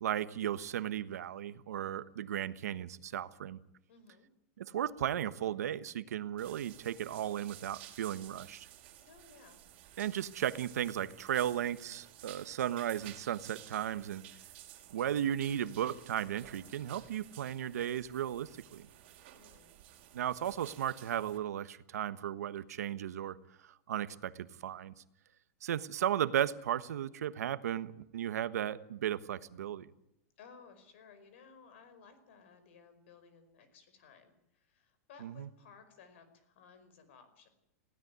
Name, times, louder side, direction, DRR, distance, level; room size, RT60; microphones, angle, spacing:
voice 1, 0.0-3.6 4.6-8.7 10.0-14.2 14.9-18.9 20.1-23.4 23.6-24.9 25.6-29.9 35.2-35.5, right 10 dB, 80° right, 13 dB, 1.3 m, -35 dB
voice 2, 3.9-4.3 9.0-9.6 19.4-19.8 30.4-37.5, left 5 dB, 50° left, 11 dB, 4.9 m, -58 dB
sound 1, 6.4-21.4, right 13 dB, 40° right, 3.4 m, -54 dB
19.5 x 16.5 x 9.6 m, 0.80 s
supercardioid pair, 175°, 8 cm